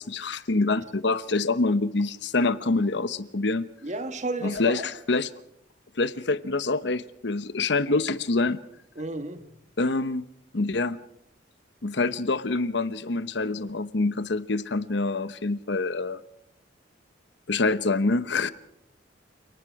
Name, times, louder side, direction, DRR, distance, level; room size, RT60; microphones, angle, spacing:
voice 1, 0.0-3.6 4.4-5.3 6.0-8.6 9.8-10.2 10.5-11.0 11.8-16.2 17.5-18.5, left 3 dB, 65° left, 1.0 m, -26 dB
voice 2, 3.8-4.9 9.0-9.5, right 2 dB, 40° right, 1.8 m, -32 dB
29.5 x 19.0 x 4.8 m
head